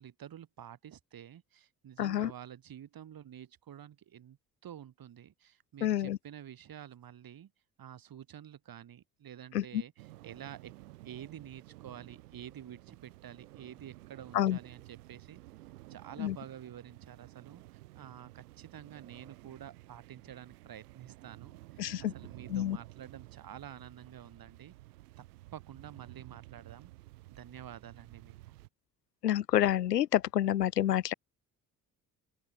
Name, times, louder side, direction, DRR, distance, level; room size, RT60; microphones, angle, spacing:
voice 1, 0.0-4.4 4.6-7.5 7.8-10.7 11.0-15.4 15.9-24.7 25.2-25.3 25.5-26.9 27.3-28.5, right 10 dB, 45° right, 5.0 m, -49 dB
voice 2, 2.0-2.3 5.8-6.2 9.5-9.6 14.3-14.6 16.2-16.3 21.8-22.1 22.5-22.8 29.2-31.1, left 12 dB, 80° left, 0.8 m, -28 dB
sound 1, 10.0-28.7, right 18 dB, 70° right, 2.5 m, -53 dB
open air
figure-of-eight pair, 45°, 47 cm